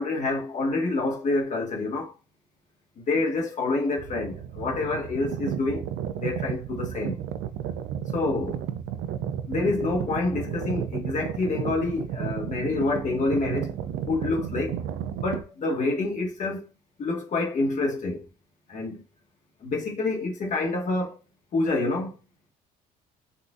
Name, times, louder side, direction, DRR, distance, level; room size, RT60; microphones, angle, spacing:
voice 1, 0.0-2.1 3.0-7.2 8.1-8.6 9.5-13.7 14.1-14.8 15.2-16.6 17.0-18.3 18.7-19.0 19.6-21.2 21.5-22.1, left 3 dB, 45° left, 1.2 m, -27 dB
sound 1, 4.0-15.4, right 9 dB, 75° right, 0.4 m, -33 dB
3.8 x 2.4 x 2.5 m
cardioid pair, 110°, 17 cm